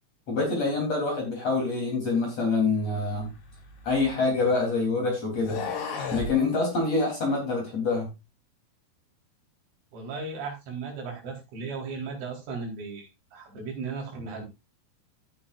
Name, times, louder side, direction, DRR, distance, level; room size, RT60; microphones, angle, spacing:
voice 1, 0.3-3.3 3.8-5.6 6.1-8.1, left 3 dB, 35° left, 0 dB, 4.1 m, -26 dB
sound 1, 3.1-4.6 5.3-6.4, left 5 dB, 80° left, 5.6 m, -35 dB
voice 2, 9.9-14.4, right 4 dB, 75° right, -1 dB, 6.6 m, -36 dB
15.5 x 8.6 x 2.6 m, 0.24 s
omnidirectional pair, 5.6 m